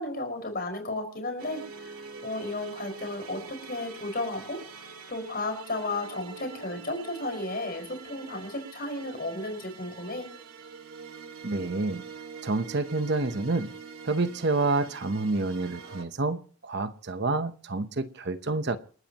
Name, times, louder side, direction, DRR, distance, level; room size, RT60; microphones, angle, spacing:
voice 1, 0.0-1.9 2.2-10.3, left 2 dB, 45° left, 5.4 m, -34 dB
sound 1, 1.4-16.0, right 5 dB, 80° right, 2.3 m, -45 dB
voice 2, 11.4-12.0 12.4-13.7 14.0-18.8, right 3 dB, 50° right, 0.9 m, -28 dB
29.0 x 13.0 x 3.0 m
head